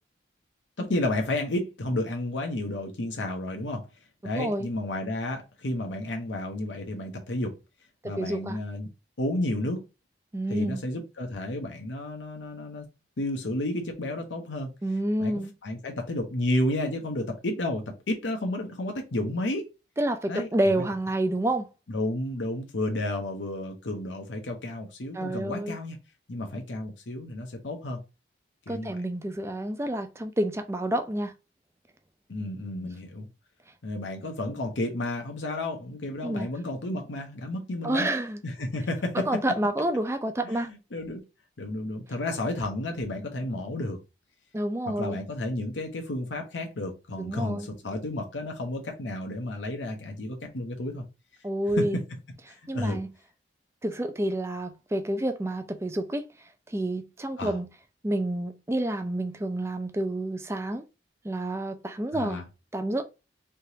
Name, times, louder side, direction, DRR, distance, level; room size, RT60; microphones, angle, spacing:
voice 1, 0.8-3.9 4.2-7.5 8.0-8.9 9.2-9.8 10.5-12.9 13.2-14.7 15.2-15.3 15.6-19.7 20.3-20.5 21.9-26.0 26.3-28.0 28.7-29.0 32.3-33.3 33.8-38.1 38.4-39.4 40.5-41.2 41.6-44.0 44.9-51.0 51.8-51.9 52.5-53.0 57.4-57.6 62.1-62.4, left 1 dB, 85° left, 0.8 m, -31 dB
voice 2, 4.3-4.7 8.0-8.6 10.3-10.8 14.8-15.5 20.0-21.7 25.1-25.8 28.7-31.3 32.8-32.9 36.2-36.5 37.8-38.4 39.1-40.7 44.5-45.2 47.2-47.7 51.4-52.0 52.7-53.1 53.8-56.2 56.7-57.7 58.0-60.8 61.2-62.4 62.7-63.0, right 1 dB, 15° right, 0.4 m, -29 dB
3.4 x 2.9 x 2.8 m
head